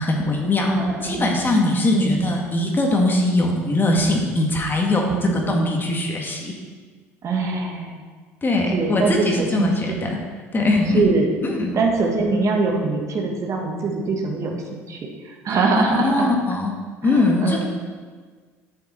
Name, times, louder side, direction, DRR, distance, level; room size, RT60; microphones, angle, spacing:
voice 1, 0.0-0.7 1.0-6.5 8.4-10.2 10.5-11.1 11.4-11.7 15.8-16.7 17.0-17.6, left 2 dB, 25° left, 0 dB, 1.9 m, -21 dB
voice 2, 0.6-1.4 1.9-2.4 5.0-5.7 7.2-8.0 8.7-10.0 10.9-11.3 11.7-15.0 15.2-16.3 17.0-17.6, right 3 dB, 45° right, 1 dB, 1.7 m, -23 dB
10.0 x 6.6 x 4.4 m, 1.5 s
hypercardioid pair, 75°, 7 cm